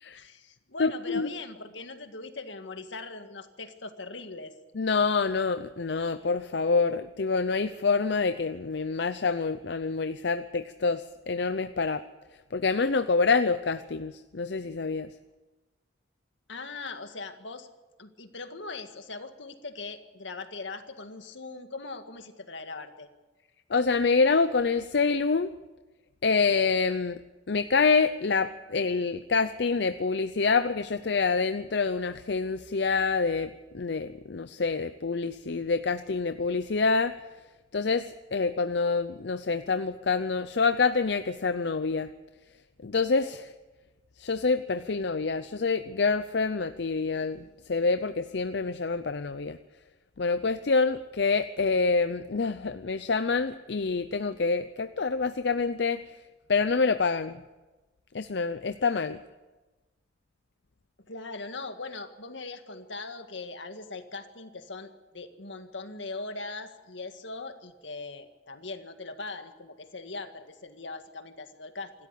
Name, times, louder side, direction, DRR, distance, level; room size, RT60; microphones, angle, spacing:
voice 1, 0.1-4.5 16.5-17.7 18.0-23.1 61.1-71.9, left 3 dB, 85° left, 7 dB, 1.9 m, -40 dB
voice 2, 0.8-1.3 4.8-12.0 12.5-15.1 23.7-25.5 26.2-27.2 27.5-37.1 37.7-42.1 42.8-43.5 44.2-47.4 47.7-49.6 50.2-56.0 56.5-57.4 58.1-59.2, left 4 dB, 65° left, 11 dB, 0.6 m, -26 dB
27.0 x 13.0 x 8.5 m, 1.2 s
head